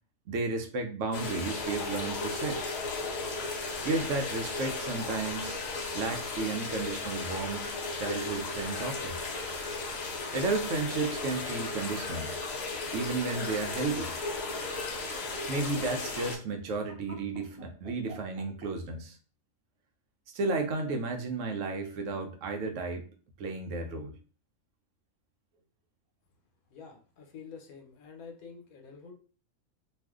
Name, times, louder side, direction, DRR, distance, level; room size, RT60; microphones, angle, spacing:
voice 1, 0.3-2.6 3.8-5.6 5.9-9.2 10.3-12.3 12.9-14.1 15.5-19.2 20.3-23.1 23.4-24.2, right 3 dB, 70° right, 4 dB, 0.9 m, -33 dB
sound 1, 1.1-16.4, left 3 dB, 60° left, 0.7 m, -35 dB
sound 2, 9.7-13.0 13.3-18.7, equal, 35° right, 0.6 m, -49 dB
voice 2, 26.7-29.1, left 6 dB, 80° left, 3 dB, 1.2 m, -48 dB
2.5 x 2.4 x 3.4 m, 0.38 s
omnidirectional pair, 1.5 m